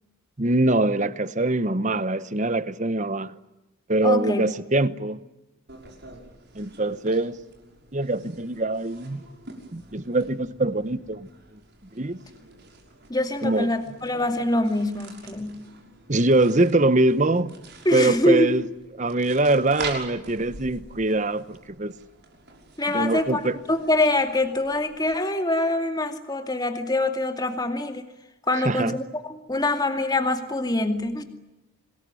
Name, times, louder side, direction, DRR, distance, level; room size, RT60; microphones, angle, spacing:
voice 1, 0.4-3.3 3.9-5.2 6.5-7.4 7.9-9.2 9.7-11.3 11.9-12.2 13.4-13.7 16.1-17.5 17.9-18.6 19.0-21.9 22.9-23.6 28.6-29.0, right 2 dB, 35° right, 1.0 m, -23 dB
voice 2, 4.0-4.5 13.1-15.6 17.8-18.5 22.8-28.1 28.5-31.2, left 2 dB, 20° left, 2.4 m, -24 dB
sound 1, 5.7-25.1, right 3 dB, 50° right, 6.2 m, -45 dB
27.0 x 20.5 x 9.7 m
head